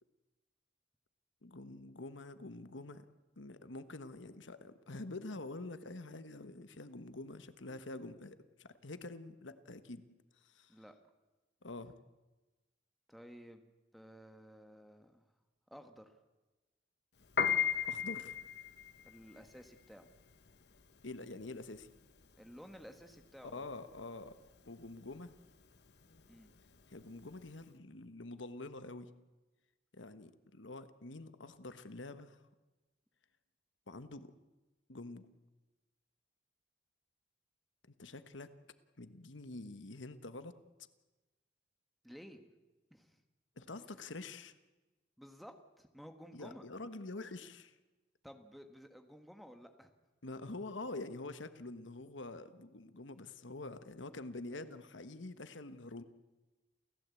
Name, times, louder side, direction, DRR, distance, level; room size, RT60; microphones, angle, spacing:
voice 1, 1.4-3.1 3.4-10.0 10.4-10.7 11.6-11.9 17.5-17.6 17.9-18.4 21.0-21.9 23.4-24.4 24.6-25.3 26.9-29.1 29.9-32.4 33.9-34.3 34.9-35.3 38.0-38.5 39.0-40.5 43.6-44.5 46.3-47.7 50.2-56.0, left 2 dB, 85° left, 11 dB, 1.3 m, -46 dB
voice 2, 13.1-15.3 15.7-16.2 19.0-20.1 22.4-23.7 26.3-26.5 42.0-42.5 42.9-43.2 45.2-46.7 48.2-49.9, equal, ahead, 6 dB, 1.6 m, -54 dB
Piano, 17.2-27.6, left 8 dB, 60° left, 1.3 m, -38 dB
29.0 x 15.5 x 8.5 m, 1.2 s
head